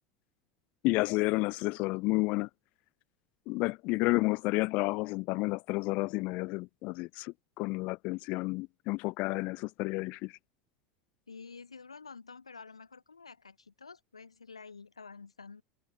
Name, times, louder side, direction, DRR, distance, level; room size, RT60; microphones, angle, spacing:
voice 1, 0.8-2.5 3.5-10.3, left 24 dB, 55° left, 0.5 m, -31 dB
voice 2, 11.3-15.6, left 5 dB, 90° left, 2.1 m, -49 dB
figure-of-eight pair, 80°, 3 cm